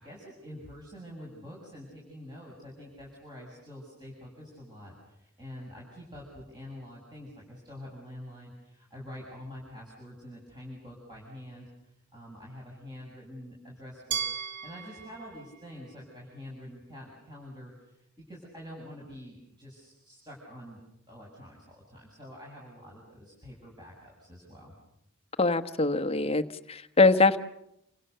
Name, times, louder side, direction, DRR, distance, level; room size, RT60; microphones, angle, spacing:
voice 1, 0.0-20.8 21.1-24.7, left 1 dB, 20° right, -4 dB, 7.4 m, -46 dB
Glass, 14.1-17.0, right 8 dB, 55° right, 1.4 m, -38 dB
voice 2, 25.4-27.4, left 3 dB, 25° left, 8 dB, 1.2 m, -23 dB
29.5 x 27.5 x 6.8 m, 0.79 s
head